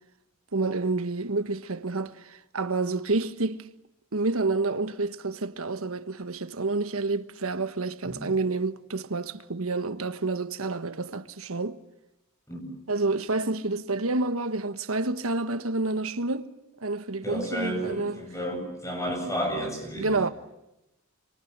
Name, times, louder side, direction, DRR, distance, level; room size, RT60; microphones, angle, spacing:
voice 1, 0.5-3.7 4.1-11.8 12.9-16.5 16.8-18.2 20.0-20.3, right 3 dB, 75° right, 1.3 m, -29 dB
voice 2, 17.2-20.3, equal, 15° left, 8.0 m, -32 dB
27.5 x 25.5 x 8.1 m
head